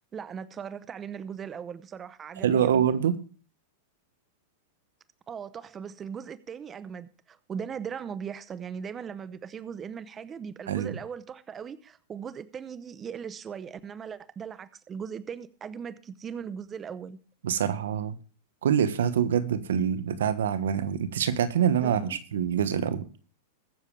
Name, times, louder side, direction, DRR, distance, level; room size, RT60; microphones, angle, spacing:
voice 1, 0.1-2.9 5.3-17.2 21.8-22.2, right 7 dB, 25° right, 0.7 m, -39 dB
voice 2, 2.4-3.2 10.7-11.0 17.4-18.2 18.6-23.1, right 8 dB, 85° right, 1.3 m, -25 dB
21.5 x 7.2 x 3.3 m
hypercardioid pair, 125°, 0 cm